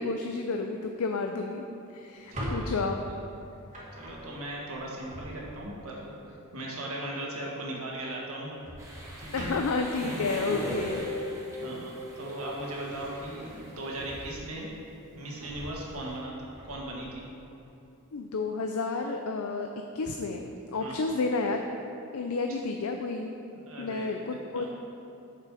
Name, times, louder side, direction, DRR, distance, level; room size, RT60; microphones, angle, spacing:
voice 1, 0.0-1.6 1.9-3.0 9.3-11.0 18.1-19.7 19.9-21.7 22.1-23.3 23.8-24.6, left 3 dB, 70° left, 4 dB, 0.5 m, -31 dB
Drawer open or close, 2.1-5.8 7.3-7.6 7.9-8.1 8.6-11.5 11.9-14.7 15.1-17.0, equal, 35° right, 2.0 m, -42 dB
voice 2, 2.3-2.7 4.0-8.5 9.2-9.5 10.0-10.3 11.0-11.1 11.6-14.7 15.2-16.3 16.6-17.2 20.8-21.0 23.5-24.7, right 1 dB, 70° right, -3 dB, 1.8 m, -38 dB
sound 1, 8.8-14.4, right 1 dB, 15° right, 1.6 m, -45 dB
Guitar, 10.4-14.3, left 1 dB, 20° left, 1.6 m, -39 dB
8.3 x 6.7 x 4.9 m, 2.7 s
head